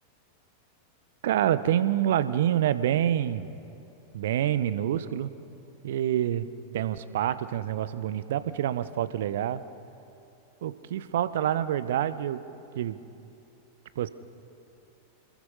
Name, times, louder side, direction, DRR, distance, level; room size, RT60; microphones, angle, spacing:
voice 1, 1.2-3.5 4.1-5.3 5.8-6.5 6.7-9.6 10.6-12.4 12.7-13.0 14.0-14.1, right 11 dB, 55° right, 15 dB, 0.8 m, -27 dB
26.5 x 20.5 x 5.6 m, 2.7 s
figure-of-eight pair, 90°, 0 cm